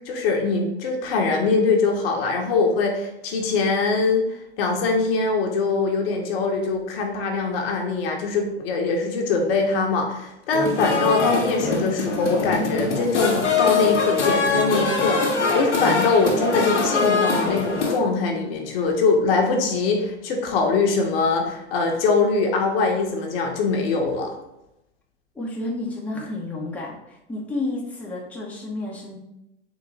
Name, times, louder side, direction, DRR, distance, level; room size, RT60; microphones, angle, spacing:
voice 1, 0.1-4.2 4.6-15.2 15.5-24.3, left 4 dB, 55° left, 2 dB, 1.0 m, -22 dB
sound 1, 10.5-18.0, left 4 dB, 85° left, 1.0 m, -23 dB
voice 2, 25.3-29.2, left 2 dB, 5° left, -4 dB, 1.0 m, -31 dB
3.9 x 3.0 x 4.1 m, 0.87 s
hypercardioid pair, 100°, 34 cm